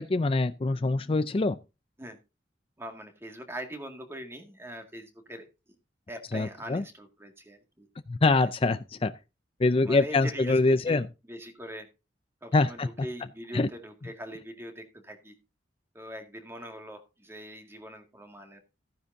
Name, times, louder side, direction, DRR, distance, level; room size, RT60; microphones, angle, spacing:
voice 1, 0.0-1.6 6.3-6.8 8.1-9.1 9.6-11.0 12.5-12.9 13.5-13.7, left 3 dB, 30° left, 0.4 m, -24 dB
voice 2, 2.8-5.5 6.1-7.9 8.4-8.5 9.8-11.9 12.4-15.4 15.9-18.6, equal, 15° right, 2.0 m, -42 dB
14.5 x 9.8 x 2.7 m
head